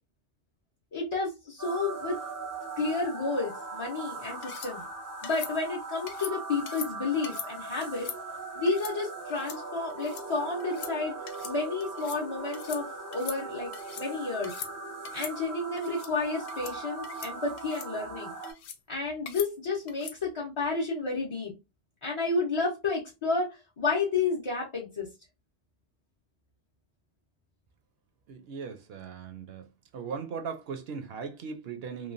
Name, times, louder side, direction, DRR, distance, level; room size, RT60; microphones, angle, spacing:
voice 1, 0.9-2.2 2.8-4.8 5.2-8.1 8.6-11.2 11.4-14.5 15.1-18.3 18.9-21.5 22.0-25.1, left 3 dB, 35° left, 0.5 m, -31 dB
sound 1, 1.6-18.5, right 3 dB, 25° right, 0.5 m, -40 dB
sound 2, 4.4-4.7 5.2-5.5 6.1-6.3 6.7-6.9 7.2-7.5 7.8-8.2 8.7-8.9 9.3-9.6 9.9-10.2 10.6-10.9 11.3-11.5 11.8-12.2 12.5-12.8 13.1-14.1 14.4-14.7 15.0-15.3 15.8-16.1 16.5-16.7 17.0-17.3 17.6-17.9 18.4-18.8 19.3-19.5 19.9-20.2, left 8 dB, 70° left, 0.8 m, -41 dB
voice 2, 28.3-29.7 29.9-32.1, right 6 dB, 65° right, 0.8 m, -38 dB
3.0 x 2.2 x 2.5 m
omnidirectional pair, 1.2 m